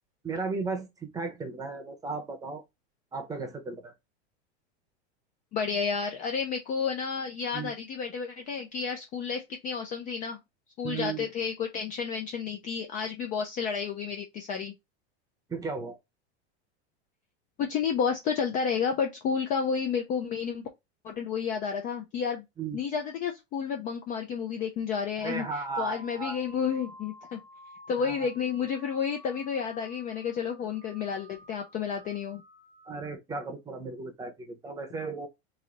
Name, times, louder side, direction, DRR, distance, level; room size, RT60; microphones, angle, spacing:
voice 1, 0.2-2.6 3.1-3.9 7.5-7.7 10.8-11.3 15.5-16.0 22.6-22.8 25.2-26.4 28.0-28.3 32.9-35.3, right 4 dB, 10° right, 0.7 m, -35 dB
voice 2, 5.5-10.4 10.8-14.7 17.6-20.7 21.0-22.5 22.7-27.4 27.9-32.4, left 6 dB, 25° left, 0.4 m, -31 dB
sound 1, 25.2-33.2, left 1 dB, 40° left, 1.5 m, -51 dB
3.1 x 2.6 x 3.8 m
supercardioid pair, 145°, 33 cm